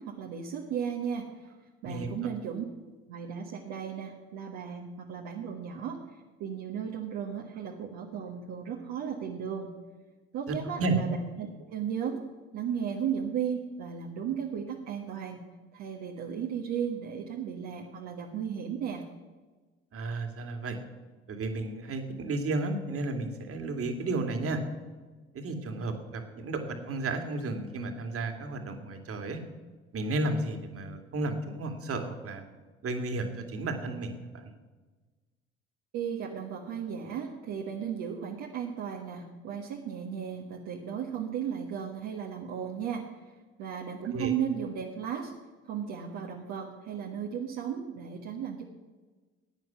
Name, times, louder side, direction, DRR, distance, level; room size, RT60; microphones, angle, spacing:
voice 1, 0.0-1.5 1.8-2.6 3.1-9.7 10.3-12.2 12.5-15.4 15.7-19.0 35.9-45.3 45.6-48.6, right 8 dB, 65° right, 0 dB, 1.5 m, -35 dB
voice 2, 10.5-11.0 19.9-20.8 21.3-24.6 25.3-29.4 29.9-32.5 32.8-34.5 44.1-44.3, right 2 dB, 50° right, 6 dB, 2.4 m, -33 dB
16.0 x 9.3 x 6.0 m, 1.3 s
hypercardioid pair, 60°, 30 cm